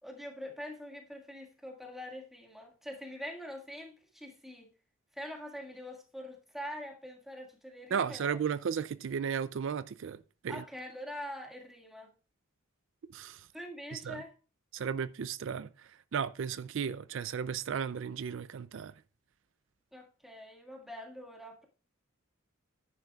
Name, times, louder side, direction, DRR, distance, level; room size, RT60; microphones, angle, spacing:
voice 1, 0.0-4.7 5.1-8.4 10.5-12.1 13.5-14.3 19.9-21.7, equal, ahead, 1.8 m, -44 dB
voice 2, 7.9-10.2 10.4-10.6 13.1-13.4 13.9-14.2 14.7-15.7 16.1-18.9, right 7 dB, 60° right, 0.4 m, -34 dB
10.5 x 9.9 x 2.3 m
head